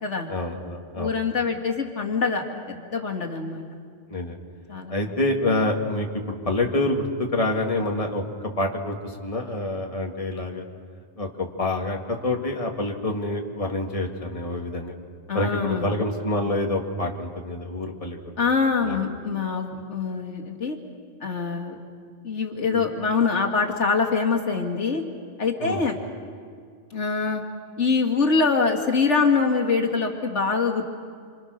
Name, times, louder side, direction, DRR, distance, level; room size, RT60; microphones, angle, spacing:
voice 1, 0.3-1.2 4.1-4.4 4.9-8.2 8.6-10.6 11.2-14.9 15.3-18.2 18.8-19.0 22.6-23.1 25.6-25.8, left 2 dB, 30° left, 2 dB, 2.2 m, -27 dB
voice 2, 0.9-3.6 4.7-4.9 15.3-15.9 18.4-20.8 21.2-21.8 22.2-25.0 25.4-26.0 26.9-27.4 27.8-30.8, left 4 dB, 80° left, 2 dB, 2.3 m, -24 dB
28.0 x 26.5 x 6.4 m, 2.1 s
omnidirectional pair, 1.2 m